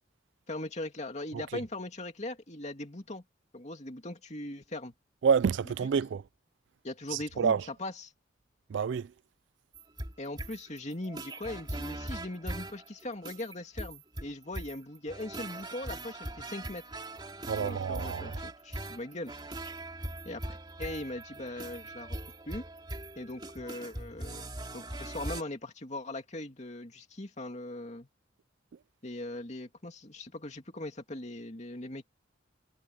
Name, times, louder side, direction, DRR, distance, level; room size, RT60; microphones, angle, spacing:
voice 1, 0.5-3.2 3.5-4.9 6.8-8.1 10.2-16.8 17.5-19.3 20.2-22.2 22.5-22.6 23.2-28.1 29.0-32.1, left 1 dB, 35° left, 2.6 m, -40 dB
voice 2, 5.2-6.2 7.1-7.6 8.7-9.1 17.5-18.4, right 6 dB, 65° right, 0.3 m, -28 dB
sound 1, 9.7-25.4, right 1 dB, 25° right, 2.9 m, -41 dB
head